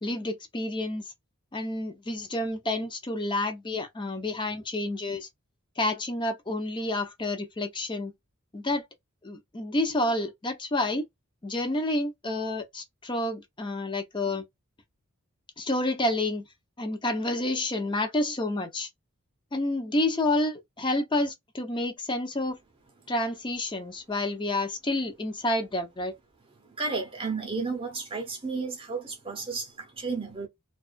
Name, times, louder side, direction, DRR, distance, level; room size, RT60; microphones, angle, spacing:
voice 1, 0.0-1.0 1.5-5.3 5.8-8.1 8.5-8.8 9.2-11.0 11.4-14.4 15.6-16.5 16.8-18.9 19.5-22.6 23.1-26.1, left 1 dB, 20° left, 0.6 m, -29 dB
voice 2, 26.6-30.5, right 4 dB, 25° right, 0.7 m, -33 dB
2.3 x 2.3 x 2.4 m
head